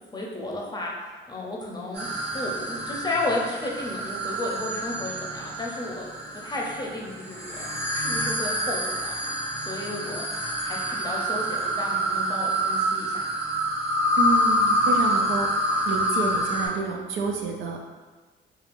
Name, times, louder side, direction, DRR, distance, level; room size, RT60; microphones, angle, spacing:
voice 1, 0.1-6.1 6.3-9.1 9.6-13.2, left 2 dB, 20° left, -2 dB, 0.6 m, -33 dB
sound 1, 1.9-16.7, equal, 60° right, 1.1 m, -27 dB
voice 2, 14.2-15.5 15.9-17.8, right 4 dB, 80° right, 1 dB, 0.5 m, -28 dB
3.2 x 2.4 x 2.5 m, 1.4 s
cardioid pair, 90°, 20 cm